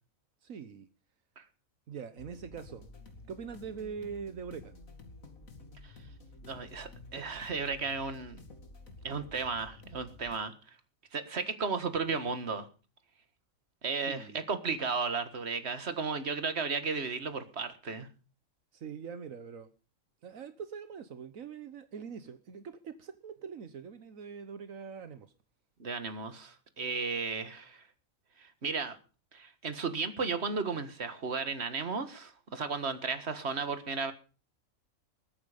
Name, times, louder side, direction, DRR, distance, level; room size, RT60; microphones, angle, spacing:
voice 1, 0.4-0.9 1.9-2.8 3.3-4.7 14.1-14.4 18.7-19.7 20.2-25.3, right 6 dB, 80° right, 10 dB, 1.5 m, -43 dB
sound 1, 2.2-10.4, left 2 dB, 85° left, 2.8 m, -51 dB
voice 2, 6.4-8.4 9.0-10.5 11.1-12.7 13.8-18.1 25.8-27.8 28.4-29.0 29.3-34.1, right 4 dB, 50° right, 10 dB, 2.0 m, -34 dB
21.0 x 9.4 x 5.2 m, 0.36 s
omnidirectional pair, 1.4 m